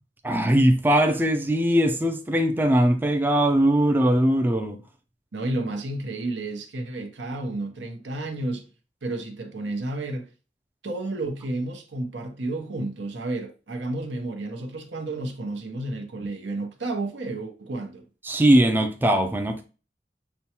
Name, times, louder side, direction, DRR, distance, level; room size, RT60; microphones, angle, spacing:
voice 1, 0.2-4.8 18.2-19.7, right 1 dB, 10° right, 0.3 m, -20 dB
voice 2, 5.3-8.7 9.0-10.3 10.8-18.0, right 2 dB, 85° right, 0.8 m, -31 dB
6.8 x 2.3 x 2.9 m
head